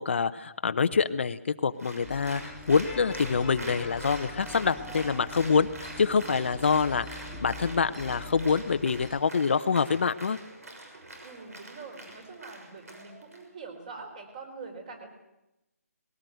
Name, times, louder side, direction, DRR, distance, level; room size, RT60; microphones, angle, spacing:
voice 1, 0.0-10.4, left 5 dB, 50° left, 10 dB, 0.8 m, -26 dB
Applause, 1.8-13.4, right 2 dB, 70° right, 6.4 m, -44 dB
sound 1, 2.0-9.2, left 3 dB, ahead, 2.0 m, -43 dB
voice 2, 11.2-15.1, right 4 dB, 30° right, 6 dB, 4.2 m, -44 dB
20.5 x 17.5 x 9.2 m, 0.94 s
hypercardioid pair, 170°, 8 cm